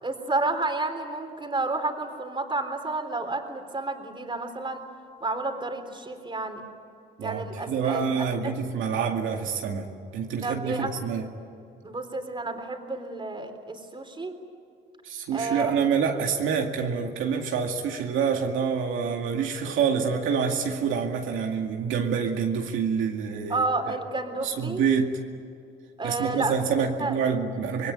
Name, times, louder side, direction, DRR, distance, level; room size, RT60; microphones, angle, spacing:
voice 1, 0.0-4.8 5.2-6.6 7.2-8.6 10.4-10.9 11.8-14.3 15.3-15.8 23.5-24.8 26.0-27.1, right 3 dB, 25° right, 5 dB, 3.8 m, -31 dB
voice 2, 7.2-9.9 10.1-11.3 15.0-23.9 24.4-25.2 26.0-27.9, right 6 dB, 85° right, 2 dB, 2.2 m, -27 dB
26.0 x 21.0 x 9.7 m, 2.5 s
cardioid pair, 90°, 20 cm